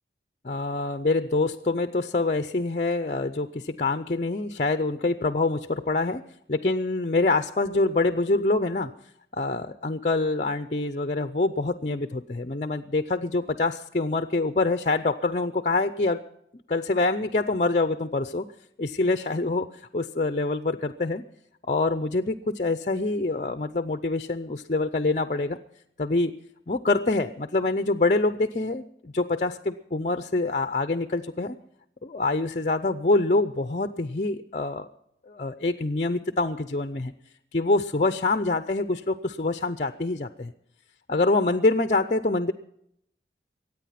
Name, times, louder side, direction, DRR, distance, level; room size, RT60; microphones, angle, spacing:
voice 1, 0.4-6.2 6.5-8.9 9.3-16.2 16.7-18.5 18.8-21.2 21.7-25.6 26.0-26.3 26.7-31.6 32.0-34.9 35.3-37.1 37.5-40.5 41.1-42.5, left 2 dB, 40° left, 10 dB, 0.6 m, -25 dB
23.5 x 9.3 x 5.8 m, 0.74 s
head